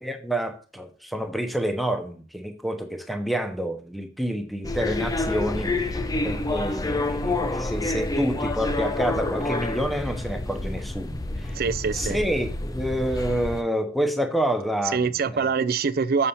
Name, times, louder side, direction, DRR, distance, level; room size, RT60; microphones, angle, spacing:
voice 1, 0.0-11.6 11.9-15.6, equal, ahead, 0.9 m, -28 dB
sound 1, 4.6-13.6, left 2 dB, 20° left, 0.6 m, -28 dB
voice 2, 11.6-12.2 14.9-16.3, right 5 dB, 50° right, 0.4 m, -24 dB
7.0 x 4.0 x 5.7 m
head